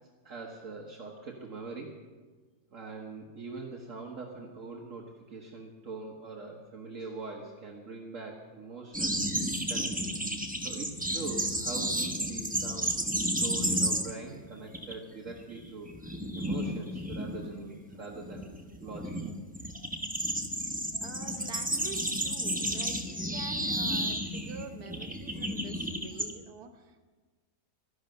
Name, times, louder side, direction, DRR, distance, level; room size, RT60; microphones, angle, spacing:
voice 1, 0.2-2.0 2.7-10.1 10.6-18.5 18.8-19.1, right 3 dB, 60° right, 0 dB, 1.6 m, -43 dB
sound 1, 8.9-14.3 14.6-14.9 15.3-26.3, equal, 5° right, 0.8 m, -32 dB
voice 2, 21.0-27.1, right 4 dB, 85° right, 7 dB, 1.7 m, -46 dB
13.5 x 11.5 x 6.6 m, 1.4 s
omnidirectional pair, 1.6 m